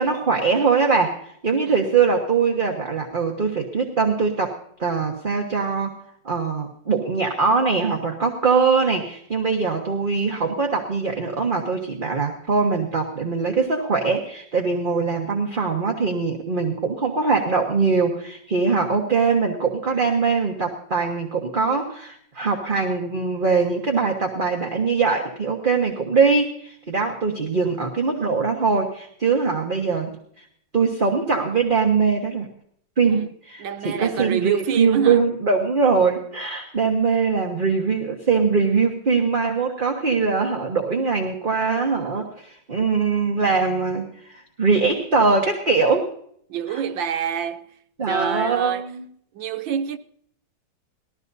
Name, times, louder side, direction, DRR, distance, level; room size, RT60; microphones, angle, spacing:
voice 1, 0.0-5.9 6.2-30.4 30.7-32.5 33.0-46.1 46.7-46.8 48.0-49.0, right 4 dB, 30° right, 1.3 m, -22 dB
voice 2, 33.6-35.2 46.5-47.7 48.1-48.9 49.3-50.0, right 8 dB, 85° right, 1.6 m, -26 dB
20.0 x 13.5 x 2.7 m
omnidirectional pair, 2.0 m